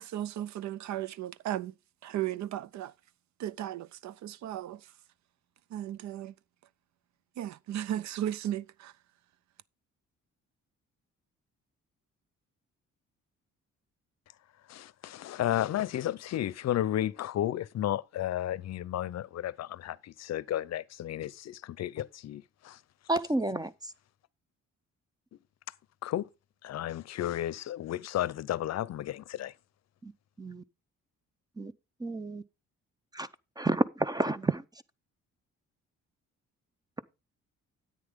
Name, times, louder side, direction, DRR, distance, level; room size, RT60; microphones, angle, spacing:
voice 1, 0.0-1.7 2.0-2.9 3.4-4.9 5.7-6.3 7.4-8.9, right 12 dB, 65° right, 0.5 m, -35 dB
voice 2, 14.7-22.8 26.0-26.3 26.6-29.5, left 12 dB, 60° left, 0.6 m, -33 dB
voice 3, 23.1-23.7 30.0-30.1 30.4-30.6 31.6-31.7 32.0-32.4 33.1-33.3 33.6-34.6, right 2 dB, 15° right, 0.6 m, -30 dB
9.9 x 8.7 x 3.6 m
cardioid pair, 90°, 30 cm